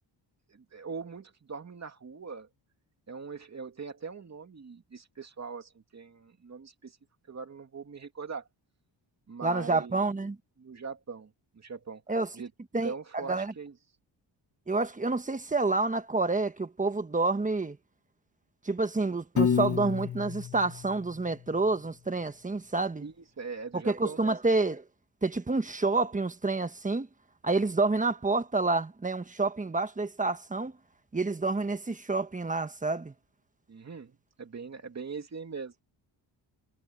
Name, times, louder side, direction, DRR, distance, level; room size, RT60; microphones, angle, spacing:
voice 1, 0.5-2.5 3.1-7.0 7.3-8.5 9.3-10.0 10.6-12.0 12.3-12.5 12.8-13.7 23.0-24.4 33.7-35.7, right 5 dB, 35° right, 2.8 m, -41 dB
voice 2, 9.4-10.4 12.1-12.3 12.7-13.5 14.7-17.8 18.6-23.1 23.7-24.9 25.2-27.1 27.4-30.8 31.1-33.1, right 3 dB, 15° right, 1.3 m, -28 dB
Piano, 19.4-21.6, left 7 dB, 40° left, 1.2 m, -30 dB
wide cardioid pair, 125°, 44 cm